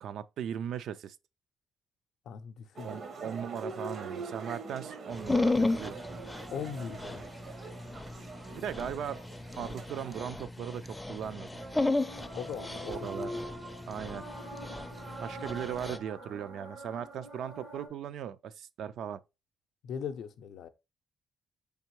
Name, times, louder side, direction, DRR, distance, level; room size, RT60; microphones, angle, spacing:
voice 1, 0.0-1.2 2.8-6.0 8.5-9.2 9.6-11.6 12.9-13.3 13.9-14.2 15.2-19.2, right 9 dB, 75° right, 0.3 m, -38 dB
voice 2, 2.3-2.9 6.5-7.2 12.3-13.0 19.8-20.7, left 7 dB, 75° left, 0.5 m, -39 dB
sound 1, 2.8-10.2, right 4 dB, 55° right, 0.7 m, -44 dB
Dog, 5.1-16.0, left 2 dB, 10° left, 0.4 m, -34 dB
sound 2, 11.5-17.9, right 1 dB, 90° right, 2.1 m, -44 dB
4.4 x 3.4 x 3.0 m
cardioid pair, 90°, 0 cm